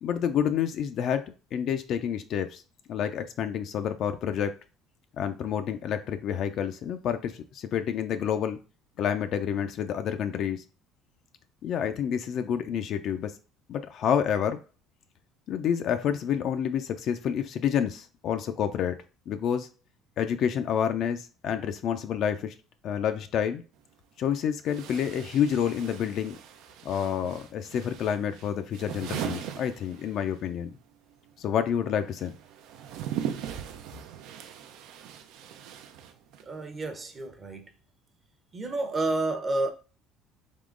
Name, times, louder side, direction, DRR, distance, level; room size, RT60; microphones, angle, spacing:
voice 1, 0.0-2.6 2.9-4.5 5.2-8.6 9.0-10.6 11.6-13.3 13.7-14.6 15.5-19.0 19.3-19.7 20.2-22.5 22.8-23.6 24.2-26.4 26.8-30.7 31.4-32.3, left 8 dB, 55° left, 0.4 m, -28 dB
sound 1, 23.7-23.8 24.6-30.5 30.7-36.6, right 9 dB, 75° right, 0.5 m, -39 dB
voice 2, 36.4-37.7 38.5-39.7, right 2 dB, 25° right, 0.7 m, -30 dB
3.7 x 3.0 x 3.7 m
cardioid pair, 125°, 0 cm